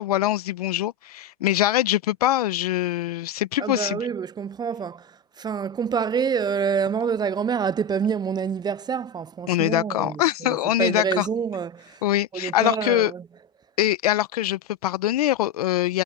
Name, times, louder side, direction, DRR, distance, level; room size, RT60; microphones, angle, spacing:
voice 1, 0.0-4.1 9.5-11.3 12.0-13.1 13.8-16.0, left 14 dB, 80° left, 1.1 m, -23 dB
voice 2, 3.6-12.0 12.3-13.2, right 7 dB, 20° right, 0.6 m, -27 dB
hypercardioid pair, 95°, 19 cm